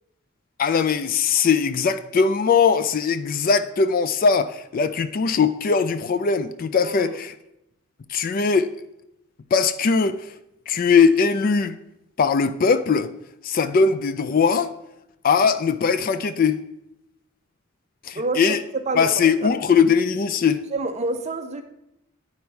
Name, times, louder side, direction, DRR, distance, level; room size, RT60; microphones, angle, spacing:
voice 1, 0.6-7.3 8.1-8.7 9.5-10.3 10.7-11.8 12.2-13.1 13.4-14.7 15.2-16.6 18.0-18.6 19.0-20.6, left 5 dB, 45° left, 0.4 m, -20 dB
voice 2, 6.8-7.2 18.2-18.4 18.7-19.5 20.7-21.6, right 3 dB, 35° right, 0.6 m, -28 dB
9.5 x 4.2 x 4.6 m
head